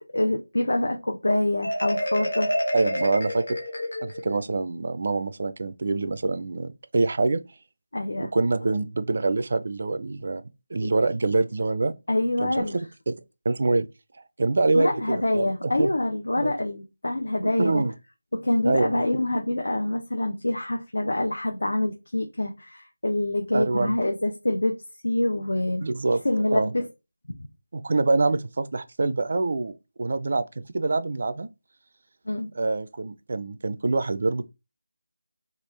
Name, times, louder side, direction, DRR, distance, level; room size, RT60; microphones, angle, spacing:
voice 1, 0.1-2.5 7.9-8.3 10.8-10.9 12.1-12.8 14.7-17.8 18.3-24.8 25.0-25.8 26.2-26.9 32.3-32.5, left 1 dB, 90° left, 0.7 m, -26 dB
Marimba xylophone, 1.6-4.4, equal, 60° left, 1.1 m, -28 dB
voice 2, 2.7-3.4 4.0-7.4 8.2-10.4 10.7-11.9 12.4-12.7 13.1-13.2 13.5-13.9 14.4-15.9 16.4-16.5 17.4-17.9 18.6-19.0 23.5-24.0 25.8-26.7 27.7-30.4 30.7-31.5 32.6-34.4, right 3 dB, 35° right, 0.3 m, -25 dB
3.4 x 2.4 x 3.2 m
figure-of-eight pair, 175°, 0 cm